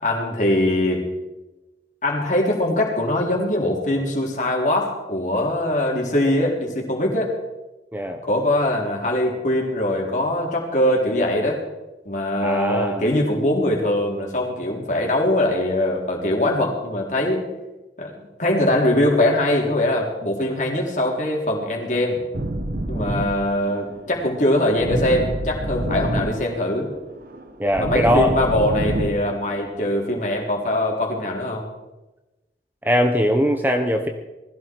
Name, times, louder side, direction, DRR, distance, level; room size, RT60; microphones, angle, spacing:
voice 1, 0.0-1.1 2.0-7.3 8.2-11.6 12.1-17.4 18.0-22.2 22.9-26.9 27.8-31.6, left 1 dB, 45° left, 0 dB, 3.6 m, -22 dB
voice 2, 12.4-13.0 27.6-28.4 32.8-34.1, equal, 10° right, 5 dB, 1.0 m, -20 dB
sound 1, 22.3-30.4, right 1 dB, 50° right, 1.3 m, -28 dB
20.0 x 15.0 x 4.7 m, 1.1 s
head